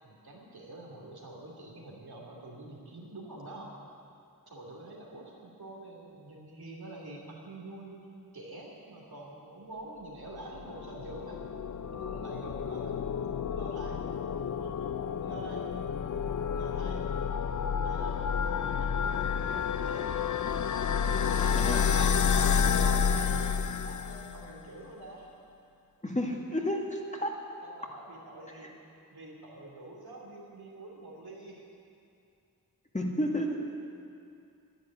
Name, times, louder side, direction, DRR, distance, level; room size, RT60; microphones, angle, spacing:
voice 1, 0.0-3.7 4.5-8.0 8.3-11.4 11.9-13.0 13.5-14.0 14.5-15.7 16.5-17.0 17.8-20.1 21.3-21.9 22.5-25.4 27.6-28.7 29.1-31.6, right 2 dB, 85° right, -2 dB, 2.9 m, -46 dB
sound 1, 10.4-24.5, left 6 dB, 55° left, 0.5 m, -30 dB
voice 2, 26.0-27.3 28.6-28.7 32.9-33.8, equal, 20° left, 0 dB, 1.8 m, -31 dB
11.0 x 10.5 x 9.9 m, 2.5 s
wide cardioid pair, 70°, 37 cm